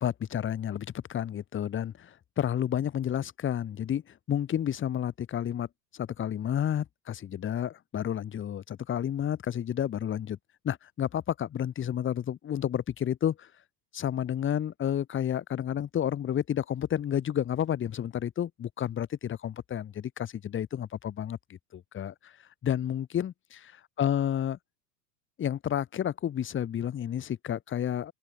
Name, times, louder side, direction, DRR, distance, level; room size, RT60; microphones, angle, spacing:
voice 1, 0.0-5.7 5.9-10.4 10.6-13.5 13.9-22.3 22.6-24.6 25.4-28.1, left 10 dB, 25° left, 1.5 m, -31 dB
open air
hypercardioid pair, 95°, 50 cm